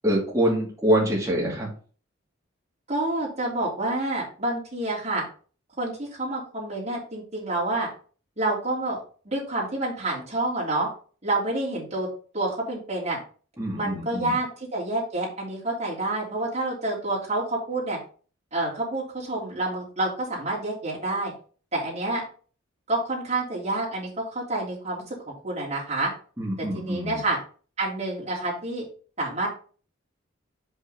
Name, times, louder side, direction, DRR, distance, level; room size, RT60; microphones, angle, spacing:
voice 1, 0.0-1.7 13.6-14.3 26.4-27.2, right 1 dB, 15° right, -5 dB, 2.3 m, -25 dB
voice 2, 2.9-5.2 5.8-7.9 8.4-9.0 9.2-10.9 11.2-12.1 12.3-13.2 13.7-18.0 18.5-21.3 21.7-22.2 22.9-26.1 26.6-27.4 27.8-28.8 29.2-29.5, right 2 dB, 35° right, -5 dB, 3.1 m, -28 dB
5.6 x 4.6 x 5.3 m, 0.40 s
head